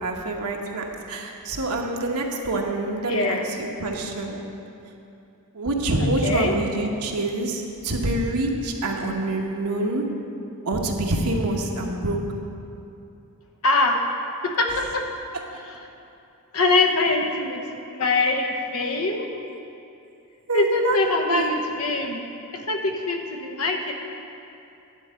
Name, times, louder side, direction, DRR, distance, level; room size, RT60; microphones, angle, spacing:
voice 1, 0.0-4.4 5.5-10.0 10.6-12.2 20.5-21.0 21.3-21.5, right 2 dB, 85° right, 1 dB, 1.1 m, -26 dB
voice 2, 3.1-3.5 5.9-6.5 13.6-14.1 14.4-15.1 15.6-15.9 16.5-17.6 17.9-19.3 20.5-22.2 22.5-23.9, left 2 dB, 70° left, 3 dB, 0.9 m, -23 dB
10.5 x 4.6 x 7.5 m, 2.7 s
head